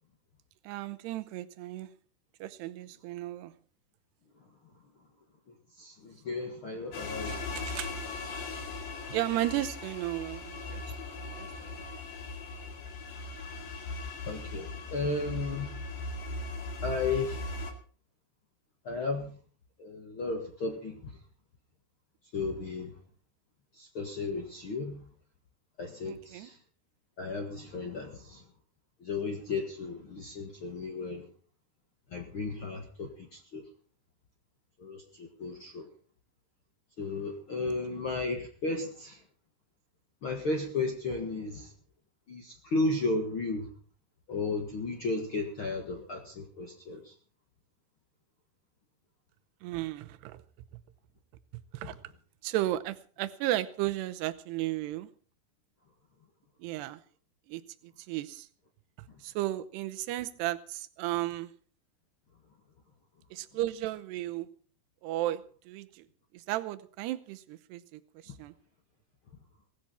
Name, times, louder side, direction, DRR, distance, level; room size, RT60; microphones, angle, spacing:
voice 1, 0.6-1.9 2.4-3.5 7.2-8.0 9.1-10.8 11.3-11.8 26.0-26.5 37.6-38.0 49.6-50.4 51.7-52.0 52.4-55.1 56.6-57.0 57.5-58.5 59.2-61.5 63.3-64.5 65.0-66.1 66.3-68.5, right 15 dB, 75° right, 11 dB, 2.8 m, -34 dB
voice 2, 5.8-7.4 14.3-15.7 16.8-17.4 18.8-19.3 19.8-21.1 22.3-22.9 23.7-25.0 25.8-26.6 27.2-28.4 29.0-31.2 32.1-33.6 34.8-35.9 37.0-39.2 40.2-41.7 42.3-43.7 44.3-47.1, left 3 dB, 85° left, 3 dB, 1.1 m, -34 dB
sound 1, 6.9-17.7, left 2 dB, 50° left, 3.4 m, -39 dB
18.0 x 15.5 x 4.3 m, 0.41 s
omnidirectional pair, 5.2 m